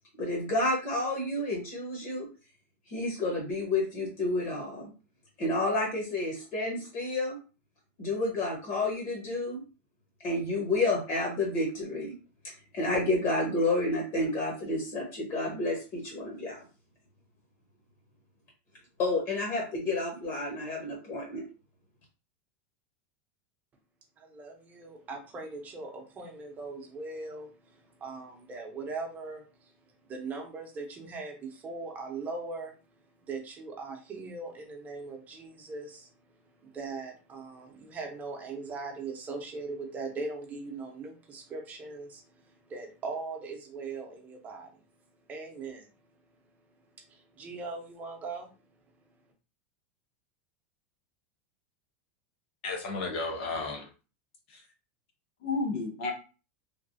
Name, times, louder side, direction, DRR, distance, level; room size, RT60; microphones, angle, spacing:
voice 1, 0.2-2.3 2.9-4.9 5.4-7.4 8.0-9.6 10.2-12.1 12.7-16.6 19.0-21.5, left 2 dB, 45° left, -2 dB, 1.1 m, -30 dB
voice 2, 24.2-29.7 30.0-32.7 33.2-36.1 36.6-44.8 45.3-45.9 47.1-48.5, right 3 dB, 25° right, 1 dB, 0.8 m, -40 dB
voice 3, 52.6-53.9 54.5-54.6 55.4-56.1, left 3 dB, 65° left, 0 dB, 1.2 m, -32 dB
3.2 x 2.3 x 2.6 m, 0.34 s
supercardioid pair, 140°, 7 cm